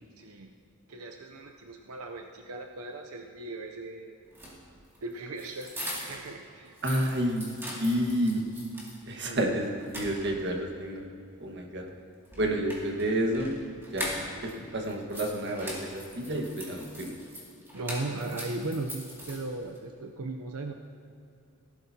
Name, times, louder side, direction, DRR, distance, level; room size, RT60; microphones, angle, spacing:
voice 1, 0.2-0.5 0.9-4.2 5.0-6.8 9.2-9.5 17.7-20.7, right 2 dB, 90° right, 3 dB, 0.7 m, -37 dB
sound 1, 4.2-6.3 6.7-9.0 9.4-9.5 9.8-10.6 12.2-14.5 14.8-19.8, equal, 10° right, 2.3 m, -41 dB
voice 2, 6.8-7.5 7.8-8.4 9.1-11.0 11.4-11.8 12.4-13.5 13.9-17.1, right 1 dB, 55° right, 1 dB, 1.5 m, -30 dB
18.0 x 11.5 x 2.8 m, 2.5 s
head